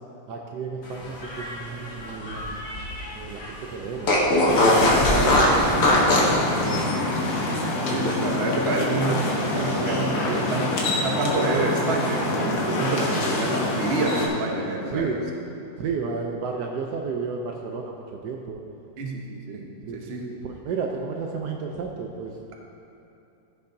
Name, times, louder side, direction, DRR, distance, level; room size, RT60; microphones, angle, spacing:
voice 1, 0.3-2.6 3.1-4.4 4.9-7.3 10.2-10.4 14.9-15.2 15.8-18.6 19.9-20.0 20.4-22.3, right 5 dB, 70° right, 1 dB, 1.1 m, -32 dB
Fart, 1.1-3.1 3.4-3.5 4.0-6.4, left 1 dB, 60° left, 1.8 m, -21 dB
sound 1, 4.5-14.3, left 2 dB, 75° left, 1.9 m, -26 dB
voice 2, 7.9-10.7 11.0-15.3 19.0-19.7 19.9-20.3, right 2 dB, 45° right, 0 dB, 0.9 m, -27 dB
14.5 x 6.6 x 2.7 m, 2.8 s
omnidirectional pair, 2.0 m